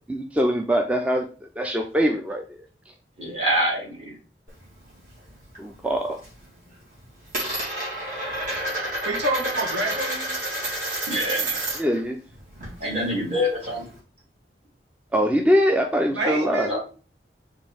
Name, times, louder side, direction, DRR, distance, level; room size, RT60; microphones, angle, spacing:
voice 1, 0.1-2.6 5.6-6.2 11.8-12.2 15.1-16.7, equal, 10° right, 2 dB, 0.4 m, -23 dB
voice 2, 3.2-4.1 11.1-11.6 12.8-13.8 16.7-16.8, equal, 35° right, -5 dB, 2.1 m, -25 dB
Coin (dropping), 4.5-5.6 5.9-6.4 6.7-12.0 12.3-14.0, right 1 dB, 50° right, 2.3 m, -30 dB
voice 3, 9.0-10.3 16.1-16.8, right 1 dB, 90° right, -1 dB, 1.5 m, -27 dB
4.4 x 3.1 x 3.3 m, 0.36 s
head